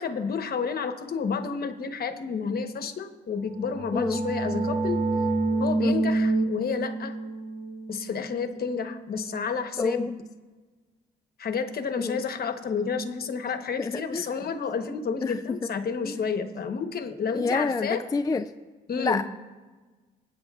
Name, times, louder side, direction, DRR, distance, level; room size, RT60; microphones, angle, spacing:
voice 1, 0.0-5.0 5.6-7.1 7.9-10.1 11.4-18.0 18.9-19.2, left 5 dB, 50° left, 8 dB, 1.0 m, -30 dB
sound 1, 3.4-9.0, right 3 dB, 55° right, 1.8 m, -28 dB
voice 2, 9.8-10.1 12.0-12.2 13.8-14.3 15.2-15.6 16.0-16.2 17.3-18.4 19.0-19.2, left 4 dB, 20° left, 9 dB, 0.4 m, -28 dB
26.0 x 8.8 x 2.4 m, 1.3 s
cardioid pair, 90°, 20 cm